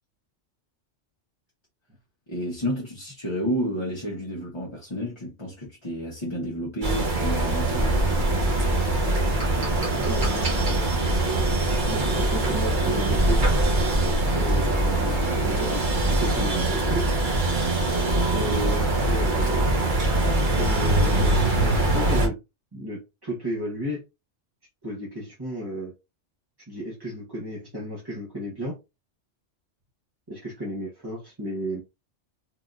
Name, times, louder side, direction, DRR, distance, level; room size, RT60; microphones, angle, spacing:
voice 1, 2.3-8.0, equal, 25° left, 0.9 m, -31 dB
sound 1, 6.8-22.3, right 2 dB, 45° right, 1.1 m, -23 dB
voice 2, 10.0-10.8 11.9-13.4 14.3-17.2 18.3-19.5 20.5-22.4 22.7-24.0 24.8-25.9 26.7-28.8 30.3-31.8, equal, 20° right, 0.8 m, -33 dB
3.8 x 2.6 x 2.3 m
omnidirectional pair, 1.2 m